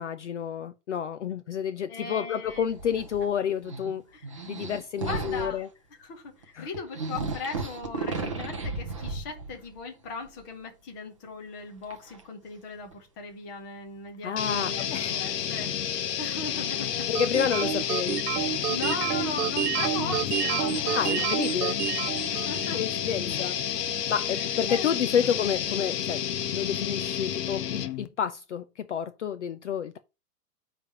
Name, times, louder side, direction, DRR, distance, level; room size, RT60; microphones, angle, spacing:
voice 1, 0.0-4.0 4.5-5.7 6.6-6.7 14.2-15.2 17.1-18.3 20.9-21.8 22.7-23.6 24.1-30.0, left 8 dB, 50° left, 0.5 m, -30 dB
voice 2, 1.9-2.6 4.1-4.5 5.0-5.6 6.0-17.3 18.7-21.5 22.3-22.8 23.3-23.5 24.5-25.3, left 4 dB, 15° left, 0.8 m, -39 dB
sound 1, 2.4-3.3 3.6-5.7 6.4-6.5 6.7-9.8 10.1-10.6 11.8-12.2 12.9-13.0 14.9-15.0 18.1-21.3, right 3 dB, 20° right, 0.5 m, -36 dB
sound 2, 14.4-28.1, left 9 dB, 80° left, 1.2 m, -30 dB
sound 3, 17.2-22.9, right 12 dB, 75° right, 0.8 m, -29 dB
9.6 x 3.4 x 5.3 m
hypercardioid pair, 180°, 47 cm